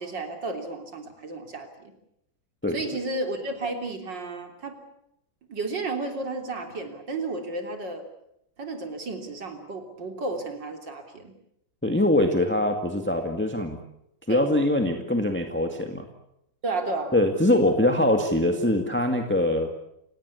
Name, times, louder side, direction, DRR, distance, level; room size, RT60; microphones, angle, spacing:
voice 1, 0.0-1.9 2.7-4.8 5.5-8.0 8.6-11.3 14.3-14.5 16.6-17.2, right 2 dB, 65° right, 5 dB, 4.0 m, -32 dB
voice 2, 11.8-13.8 14.3-16.1 17.1-19.7, left 1 dB, 5° left, 4 dB, 1.9 m, -23 dB
29.0 x 18.0 x 8.3 m, 0.80 s
omnidirectional pair, 2.1 m